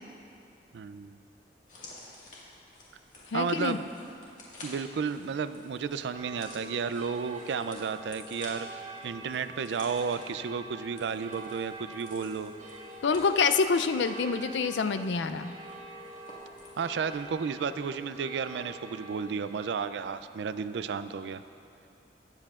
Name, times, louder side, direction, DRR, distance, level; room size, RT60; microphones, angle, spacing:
voice 1, 0.7-1.2 3.3-3.9 4.6-12.5 16.8-21.4, right 5 dB, 75° right, 12 dB, 0.4 m, -33 dB
sound 1, 1.6-17.3 17.6-17.8, left 2 dB, 45° left, 1.8 m, -52 dB
voice 2, 3.3-3.8 13.0-15.5, left 5 dB, 85° left, 10 dB, 0.4 m, -26 dB
sound 2, 6.1-19.6, right 2 dB, 45° right, 1.2 m, -46 dB
18.5 x 7.7 x 2.4 m, 2.6 s
head